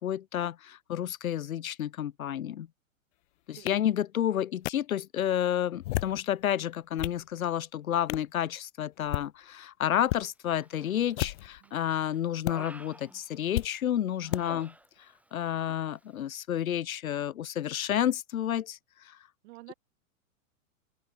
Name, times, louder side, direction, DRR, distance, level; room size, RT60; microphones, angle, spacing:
voice 1, 0.0-2.7 3.5-14.7 15.3-18.8 19.0-19.2, left 11 dB, 80° left, 1.5 m, -30 dB
sound 1, 3.7-3.8 4.6-4.7 5.7-6.2 6.7-7.2 8.1-8.3 9.0-9.3 10.0-10.2 11.1-11.6 12.4-12.5 13.5-13.7 14.3-14.4, left 17 dB, 60° left, 1.1 m, -33 dB
Human voice, 10.6-11.2 11.6-13.8 14.2-15.3 15.5-15.8, right 1 dB, 5° right, 4.1 m, -49 dB
voice 2, 19.4-19.7, right 22 dB, 55° right, 7.3 m, -49 dB
open air
hypercardioid pair, 115°, 41 cm